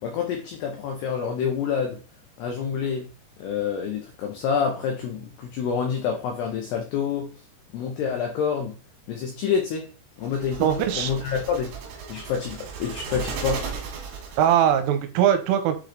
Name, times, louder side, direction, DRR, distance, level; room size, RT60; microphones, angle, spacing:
voice 1, 0.0-2.0 2.4-3.1 3.4-7.3 7.7-8.7 9.1-9.9 10.2-11.7 12.1-13.7, left 6 dB, 90° left, 2 dB, 2.3 m, -27 dB
sound 1, 10.2-14.8, right 5 dB, 65° right, 3.2 m, -36 dB
voice 2, 10.6-11.1 14.4-15.8, right 10 dB, 85° right, 7 dB, 3.2 m, -21 dB
7.7 x 3.3 x 3.8 m, 0.35 s
omnidirectional pair, 5.9 m